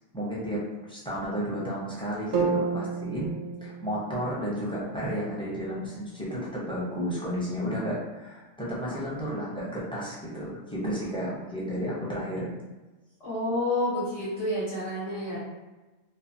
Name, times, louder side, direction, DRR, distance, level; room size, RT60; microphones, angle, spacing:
voice 1, 0.1-3.3 3.6-12.5, equal, 5° left, -7 dB, 0.6 m, -32 dB
sound 1, 2.3-6.4, right 4 dB, 60° right, 0.6 m, -33 dB
voice 2, 13.2-15.4, left 1 dB, 85° left, -10 dB, 1.2 m, -29 dB
3.0 x 2.1 x 2.6 m, 1.1 s
omnidirectional pair, 1.1 m